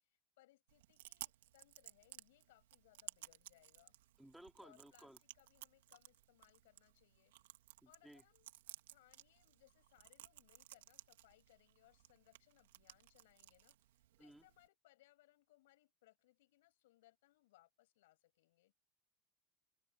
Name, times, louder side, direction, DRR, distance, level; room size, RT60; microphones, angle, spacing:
voice 1, 0.0-3.9 4.6-7.3 7.8-8.5 8.9-18.7, left 17 dB, 80° left, 6.9 m, -70 dB
Chewing mastication, 0.7-14.7, right 15 dB, 85° right, 2.4 m, -58 dB
voice 2, 4.2-5.2 7.8-8.2 14.2-14.5, right 1 dB, 5° right, 3.3 m, -59 dB
supercardioid pair, 105°, 0 cm